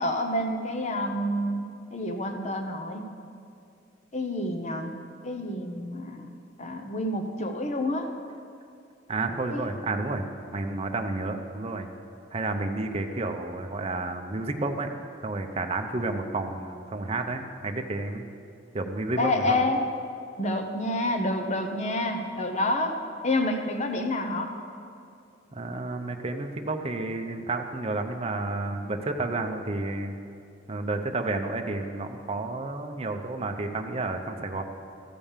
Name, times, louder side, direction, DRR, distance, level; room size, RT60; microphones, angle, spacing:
voice 1, 0.0-3.0 4.1-5.0 5.2-6.3 6.6-8.1 9.5-9.7 19.2-19.9 20.4-23.0 23.2-24.5, left 1 dB, 35° left, 5 dB, 0.8 m, -28 dB
voice 2, 9.1-10.2 10.5-11.9 12.3-14.9 15.2-18.2 18.7-19.6 25.5-30.2 30.7-34.6, right 2 dB, 30° right, 5 dB, 0.6 m, -31 dB
13.5 x 5.2 x 7.3 m, 2.5 s
head